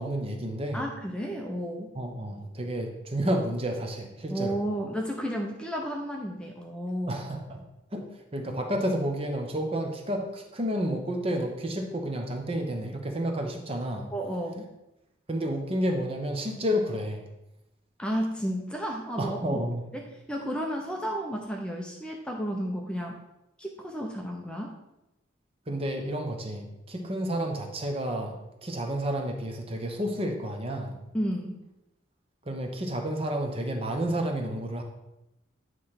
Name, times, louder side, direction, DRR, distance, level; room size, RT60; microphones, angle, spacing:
voice 1, 0.0-0.8 2.0-4.6 7.1-7.6 7.9-14.1 15.3-17.3 19.2-19.8 25.7-31.0 32.4-34.8, equal, 30° right, 3 dB, 0.9 m, -30 dB
voice 2, 0.7-1.9 4.3-7.2 14.1-14.7 18.0-19.6 19.9-23.2 23.6-24.7 31.1-31.6, equal, 5° left, 0 dB, 0.6 m, -32 dB
9.1 x 3.3 x 5.8 m, 0.92 s
head